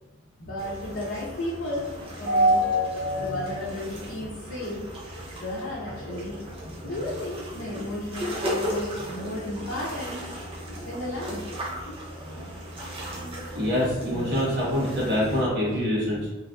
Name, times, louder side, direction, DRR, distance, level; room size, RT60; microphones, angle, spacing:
voice 1, 0.4-2.6 3.1-4.8 5.1-6.4 6.8-10.3 10.9-11.4, left 1 dB, 60° left, -7 dB, 0.7 m, -34 dB
sound 1, 0.6-15.5, equal, 25° right, 0.7 m, -36 dB
voice 2, 2.3-3.4 6.7-6.8 10.8-10.9 13.2-16.3, equal, 55° right, -6 dB, 1.2 m, -25 dB
3.1 x 2.4 x 2.4 m, 1.1 s
head